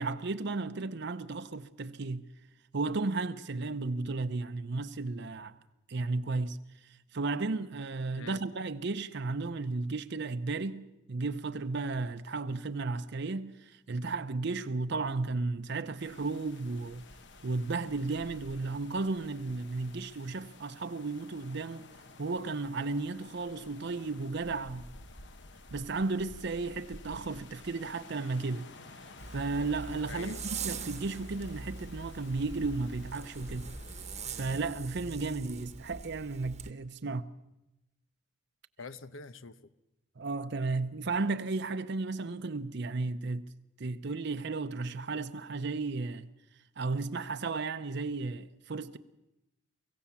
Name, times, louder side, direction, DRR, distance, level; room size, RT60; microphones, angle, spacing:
voice 1, 0.0-2.2 2.7-5.6 5.9-6.6 7.1-17.0 17.4-21.9 22.2-24.9 25.7-28.7 29.3-33.7 34.3-37.2 40.2-43.5 43.8-46.3 46.8-49.0, right 3 dB, 60° right, 0.7 m, -34 dB
sound 1, 16.0-34.6, left 2 dB, 65° left, 1.2 m, -51 dB
Zipper (clothing), 29.2-36.7, right 5 dB, 35° right, 1.0 m, -43 dB
voice 2, 30.1-30.4 38.8-39.7, left 3 dB, 90° left, 0.9 m, -45 dB
24.0 x 16.0 x 7.1 m
head